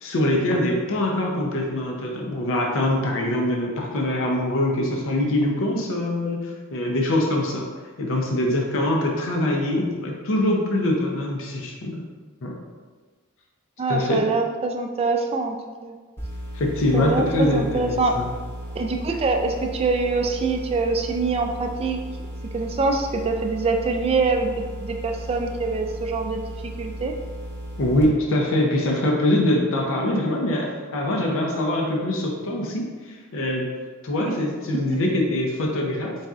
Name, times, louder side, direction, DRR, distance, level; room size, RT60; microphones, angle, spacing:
voice 1, 0.0-7.7 8.0-12.0 12.4-12.5 13.9-14.2 16.5-18.3 27.8-32.8 33.3-33.7 34.0-36.2, left 1 dB, 65° left, 0 dB, 0.6 m, -23 dB
voice 2, 13.8-15.6 15.8-16.0 16.9-18.2 18.7-22.0 22.5-27.2 34.2-34.4 34.7-34.8, right 3 dB, 25° right, 3 dB, 0.3 m, -24 dB
sound 1, 16.2-28.0, equal, 10° left, 0.6 m, -35 dB
4.1 x 3.6 x 2.4 m, 1.4 s
head